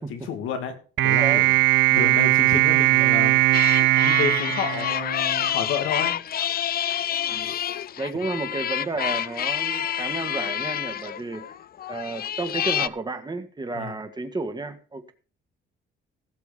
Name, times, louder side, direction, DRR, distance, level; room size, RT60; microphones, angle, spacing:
voice 1, 0.0-1.5 1.9-3.4 3.9-6.1 7.4-7.8 13.7-13.9, left 7 dB, 90° left, 2.6 m, -31 dB
sound 1, 1.0-5.5, right 18 dB, 75° right, 0.5 m, -19 dB
sound 2, 3.5-12.9, left 10 dB, 50° left, 0.5 m, -28 dB
voice 2, 8.0-11.5 11.9-15.1, right 3 dB, 20° right, 2.0 m, -32 dB
17.0 x 6.9 x 5.2 m
cardioid pair, 90°, 20 cm